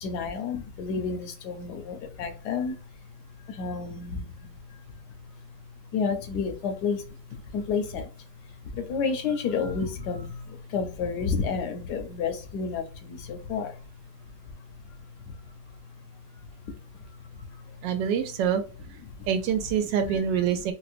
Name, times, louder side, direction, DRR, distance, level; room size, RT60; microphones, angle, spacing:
voice 1, 0.0-2.8 3.4-4.8 5.9-8.1 8.7-13.8 14.4-14.5 14.9-15.0 15.3-15.4 16.7-16.8 17.0-17.8 19.2-19.3, left 5 dB, 70° left, 6 dB, 1.2 m, -31 dB
voice 2, 17.8-18.6 19.2-20.7, right 8 dB, 90° right, 8 dB, 1.3 m, -25 dB
4.4 x 2.0 x 2.5 m, 0.35 s
omnidirectional pair, 1.9 m